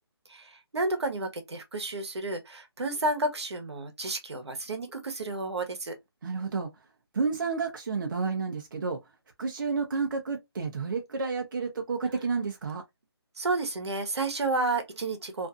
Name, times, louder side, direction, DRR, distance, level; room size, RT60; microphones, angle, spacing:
voice 1, 0.3-5.9 13.4-15.5, right 2 dB, 80° right, 1.0 m, -31 dB
voice 2, 6.2-6.7 7.1-9.0 9.4-12.8, right 4 dB, 50° right, 0.6 m, -30 dB
2.5 x 2.5 x 2.3 m
hypercardioid pair, 165°, 14 cm